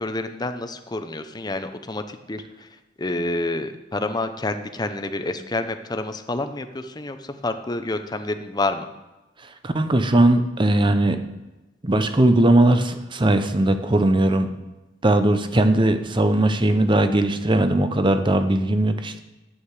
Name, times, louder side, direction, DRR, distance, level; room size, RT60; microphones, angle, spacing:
voice 1, 0.0-2.7 3.0-8.9, left 2 dB, 20° left, 8 dB, 0.7 m, -28 dB
voice 2, 9.6-11.2 11.8-14.5 15.0-19.2, right 1 dB, 25° right, 9 dB, 0.7 m, -19 dB
11.5 x 8.7 x 4.8 m, 1.1 s
head